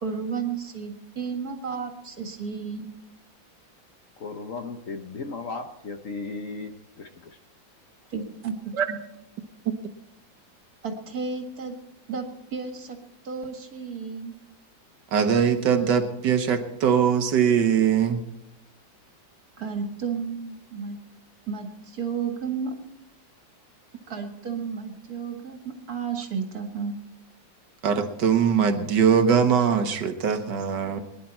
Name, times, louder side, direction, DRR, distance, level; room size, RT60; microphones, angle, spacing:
voice 1, 0.0-2.9 8.1-8.5 8.9-9.0 10.8-11.8 12.1-12.3 12.5-13.0 13.2-14.3 19.6-21.0 21.5-22.7 24.1-27.0, right 5 dB, 50° right, 5 dB, 2.3 m, -32 dB
voice 2, 4.2-6.7 7.0-7.3, left 3 dB, 50° left, 6 dB, 1.1 m, -35 dB
voice 3, 15.1-18.2 27.8-31.0, right 7 dB, 70° right, 8 dB, 1.6 m, -21 dB
21.5 x 11.0 x 4.4 m, 0.88 s
omnidirectional pair, 2.0 m